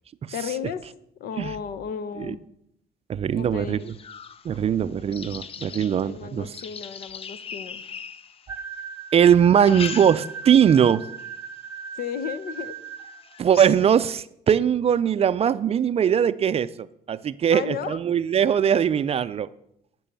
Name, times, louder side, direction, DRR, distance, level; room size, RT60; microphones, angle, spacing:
voice 1, 0.3-0.8 1.2-2.4 3.3-3.9 6.0-7.8 11.9-12.7 17.5-18.0, left 7 dB, 65° left, 13 dB, 0.9 m, -34 dB
voice 2, 3.1-3.9 4.4-6.5 9.1-11.0 13.4-19.5, right 8 dB, 35° right, 14 dB, 0.4 m, -21 dB
sound 1, 3.8-8.8 9.4-10.6 11.0-11.4 12.0-12.1 12.5-12.6 13.0-14.1, left 6 dB, 35° left, 0.6 m, -39 dB
sound 2, 8.5-13.4, right 6 dB, 10° right, 0.8 m, -38 dB
14.0 x 6.2 x 6.9 m, 0.76 s
cardioid pair, 110°, 17 cm